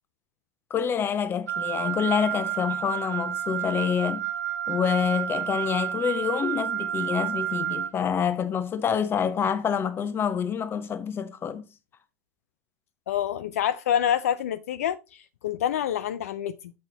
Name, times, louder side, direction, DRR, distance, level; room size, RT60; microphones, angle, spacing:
voice 1, 0.7-4.3 4.7-11.7, left 7 dB, 25° left, 1.0 m, -27 dB
Wind instrument woodwind instrument, 1.5-7.9, right 11 dB, 75° right, 0.7 m, -30 dB
voice 2, 13.1-16.7, left 10 dB, 65° left, 0.4 m, -27 dB
7.5 x 5.5 x 3.9 m
figure-of-eight pair, 80°, 8 cm